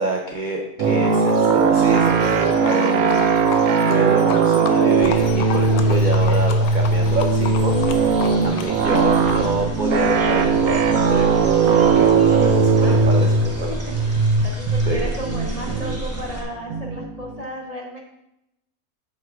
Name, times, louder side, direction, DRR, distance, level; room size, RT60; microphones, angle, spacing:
voice 1, 0.0-3.3 3.9-7.8 8.4-13.7 14.9-15.1, right 3 dB, 60° right, 1 dB, 0.5 m, -27 dB
Livestock farm animals working animals, 0.8-9.5, left 7 dB, 80° left, 1.1 m, -33 dB
sound 1, 0.8-17.3, right 4 dB, 80° right, 1.1 m, -19 dB
sound 2, 4.9-16.4, right 2 dB, 10° right, 0.9 m, -33 dB
voice 2, 14.1-18.0, equal, 50° left, -2 dB, 0.4 m, -33 dB
7.7 x 6.9 x 2.3 m, 0.85 s
omnidirectional pair, 1.5 m